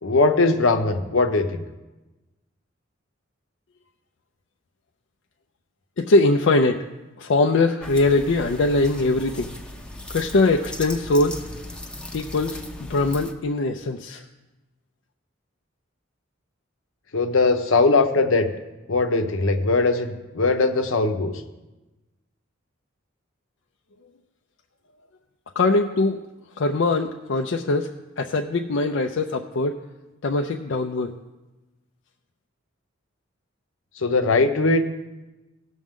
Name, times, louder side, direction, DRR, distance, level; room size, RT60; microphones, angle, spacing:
voice 1, 0.0-1.6 17.1-18.5 18.9-21.4 34.0-34.8, left 3 dB, 80° left, 6 dB, 0.9 m, -20 dB
voice 2, 6.0-6.8 7.2-9.5 10.1-11.4 12.1-14.2 25.6-26.2 26.6-27.9 28.2-29.8 30.2-31.1, left 2 dB, 65° left, 3 dB, 0.5 m, -21 dB
sound 1, 7.8-13.3, left 1 dB, 5° left, 0.6 m, -38 dB
17.5 x 6.2 x 3.7 m, 1.1 s
head